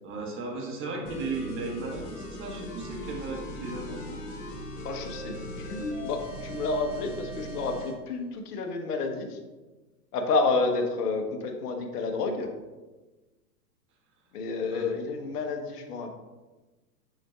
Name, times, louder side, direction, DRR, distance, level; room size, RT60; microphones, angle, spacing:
voice 1, 0.0-4.0 14.7-14.9, right 3 dB, 25° right, 0 dB, 1.4 m, -35 dB
sound 1, 1.1-8.0, equal, 55° left, 2.0 m, -39 dB
voice 2, 4.8-9.4 10.1-12.5 14.3-16.1, left 3 dB, 70° left, 4 dB, 1.2 m, -30 dB
6.6 x 6.2 x 2.4 m, 1.2 s
hypercardioid pair, 120°, 48 cm